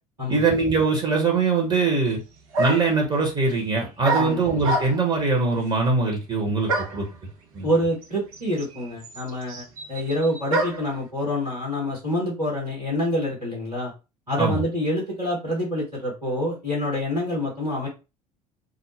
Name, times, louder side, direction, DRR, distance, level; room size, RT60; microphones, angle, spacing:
voice 1, 0.3-2.2 2.6-7.0 7.5-7.7 14.4-14.6, right 4 dB, 25° right, 0 dB, 1.0 m, -22 dB
sound 1, 2.1-2.2 2.5-3.0 4.0-5.2 6.7-7.1 8.0-8.1 8.3-10.9, right 2 dB, 65° right, 0.7 m, -27 dB
voice 2, 7.6-13.9 14.3-17.9, equal, 90° right, -3 dB, 1.2 m, -26 dB
2.4 x 2.1 x 3.2 m, 0.28 s
figure-of-eight pair, 65°, 19 cm